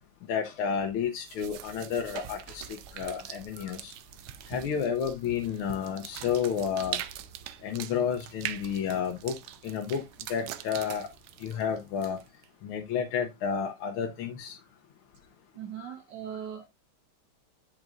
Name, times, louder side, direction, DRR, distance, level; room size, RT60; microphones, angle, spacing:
voice 1, 0.3-3.9 4.5-7.0 7.6-9.3 9.6-10.0 10.3-11.1 11.4-12.2 12.6-14.6 15.8-15.9, left 7 dB, 75° left, 1.7 m, -31 dB
sound 1, 1.2-12.4, right 11 dB, 75° right, 1.4 m, -42 dB
voice 2, 15.5-16.7, right 9 dB, 60° right, 1.2 m, -39 dB
10.5 x 5.1 x 2.6 m
omnidirectional pair, 2.4 m